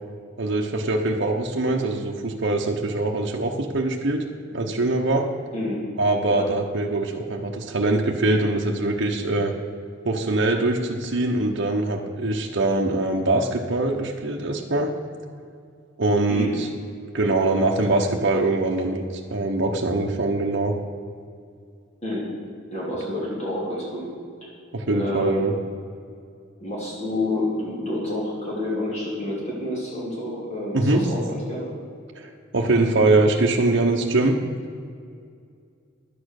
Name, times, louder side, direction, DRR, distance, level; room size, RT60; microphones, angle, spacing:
voice 1, 0.4-4.2 4.5-5.3 6.0-9.5 10.0-14.9 16.0-16.7 17.1-19.0 19.3-20.7 24.7-25.5 30.7-31.0 32.1-34.4, right 2 dB, 60° right, 0 dB, 1.0 m, -23 dB
voice 2, 5.5-5.8 6.3-6.5 16.3-16.5 22.0-22.3 22.7-24.1 24.4-24.5 24.9-25.4 26.6-31.7, left 1 dB, 35° left, -5 dB, 2.8 m, -29 dB
11.0 x 8.7 x 6.5 m, 2.3 s
head